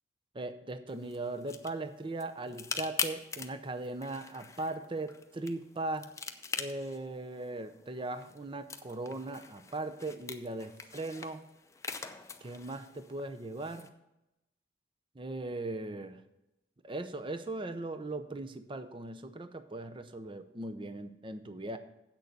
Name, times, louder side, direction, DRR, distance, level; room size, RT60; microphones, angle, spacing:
voice 1, 0.3-6.1 6.6-11.4 12.4-13.9 15.1-16.2 16.8-21.8, right 2 dB, 25° right, 10 dB, 0.6 m, -39 dB
sound 1, 0.9-13.9, left 5 dB, 15° left, 0.6 m, -43 dB
8.2 x 6.6 x 6.7 m, 0.91 s
head